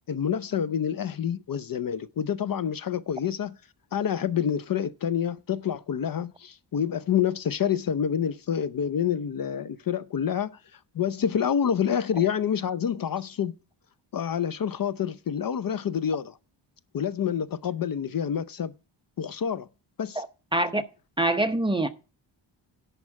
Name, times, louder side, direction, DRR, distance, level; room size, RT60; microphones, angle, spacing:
voice 1, 0.1-3.6 3.9-13.6 14.1-16.4 16.9-18.7 19.2-19.7 20.0-20.2, left 8 dB, 50° left, 0.6 m, -28 dB
voice 2, 20.5-20.8 21.2-21.9, right 1 dB, 10° right, 0.7 m, -24 dB
11.0 x 4.7 x 7.5 m
wide cardioid pair, 115°, 46 cm